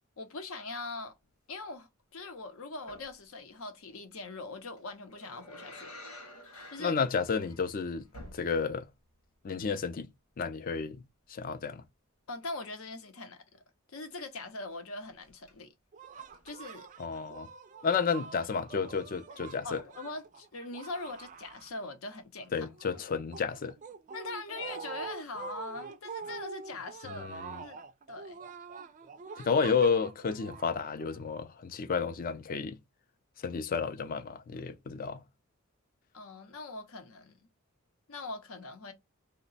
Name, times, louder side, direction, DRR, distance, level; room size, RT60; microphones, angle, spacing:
voice 1, 0.2-1.1 1.5-5.9 6.7-7.0 12.3-13.6 13.9-15.7 16.4-16.9 19.6-22.7 24.1-27.3 27.6-27.8 28.1-28.4 36.1-37.4 38.1-38.9, left 3 dB, 70° left, 0.8 m, -42 dB
sound 1, 2.9-3.2 4.8-8.9 9.2-9.3 15.1-15.5 16.2-16.6 17.5-17.6, left 1 dB, 90° left, 1.3 m, -50 dB
voice 2, 6.8-8.1 8.3-8.9 9.4-10.1 10.4-11.0 11.3-11.8 17.0-17.5 17.8-19.8 22.5-23.8 27.1-27.6 29.4-32.8 33.4-35.2, left 5 dB, 40° left, 0.4 m, -31 dB
sound 2, 15.9-22.1 22.4-31.4, right 5 dB, 35° right, 0.3 m, -45 dB
2.9 x 2.1 x 4.0 m
head